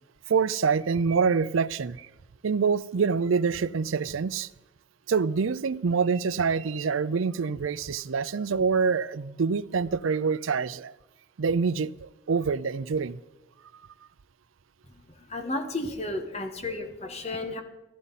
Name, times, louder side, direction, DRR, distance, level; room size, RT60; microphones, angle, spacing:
voice 1, 0.3-2.1 2.4-4.5 5.1-10.9 11.4-13.2, right 5 dB, 80° right, 18 dB, 0.5 m, -26 dB
voice 2, 15.2-17.6, left 2 dB, 30° left, 6 dB, 1.5 m, -33 dB
15.0 x 13.5 x 4.1 m, 1.1 s
head